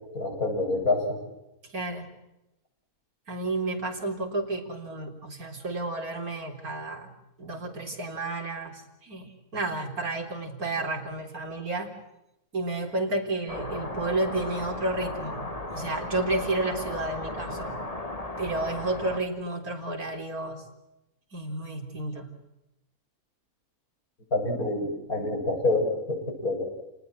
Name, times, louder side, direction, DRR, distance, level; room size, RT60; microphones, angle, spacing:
voice 1, 0.1-1.2 24.3-26.6, left 2 dB, 80° left, 1 dB, 8.4 m, -27 dB
voice 2, 1.6-2.1 3.3-7.1 7.4-11.9 12.5-17.8 18.4-20.6 21.3-22.3, right 2 dB, 90° right, 4 dB, 4.3 m, -31 dB
sound 1, 13.5-19.2, left 2 dB, 25° left, 2.5 m, -35 dB
30.0 x 19.5 x 7.8 m, 0.90 s
omnidirectional pair, 1.5 m